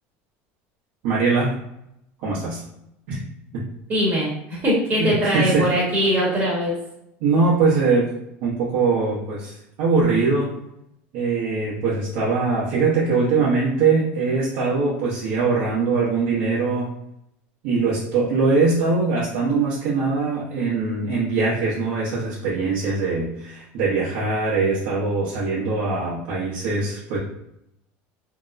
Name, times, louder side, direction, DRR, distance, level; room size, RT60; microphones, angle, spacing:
voice 1, 1.0-1.5 2.2-2.6 3.1-3.2 3.5-3.6 5.0-5.6 7.2-8.1 8.4-10.5 11.1-16.9 17.6-27.2, right 4 dB, 70° right, -7 dB, 0.9 m, -22 dB
voice 2, 3.9-6.8, equal, 35° right, -6 dB, 1.0 m, -21 dB
2.8 x 2.0 x 2.4 m, 0.82 s
supercardioid pair, 115°, 6 cm